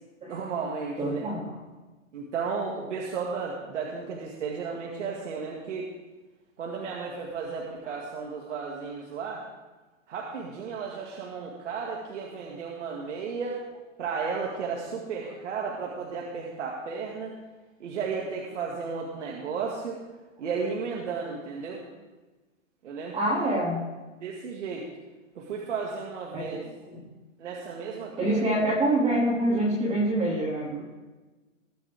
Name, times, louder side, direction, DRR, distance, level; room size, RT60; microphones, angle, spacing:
voice 1, 0.3-1.3 2.1-5.9 6.6-9.4 10.1-13.6 14.0-17.3 17.8-20.0 20.4-21.8 22.8-23.3 24.2-24.9 25.4-26.6 27.4-28.4, right 5 dB, 65° right, -2 dB, 2.1 m, -34 dB
voice 2, 1.0-1.6 23.1-23.8 26.3-26.4 26.9-27.0 28.2-30.8, right 1 dB, 15° right, -8 dB, 2.4 m, -26 dB
20.5 x 7.3 x 3.5 m, 1.2 s
hypercardioid pair, 150°, 39 cm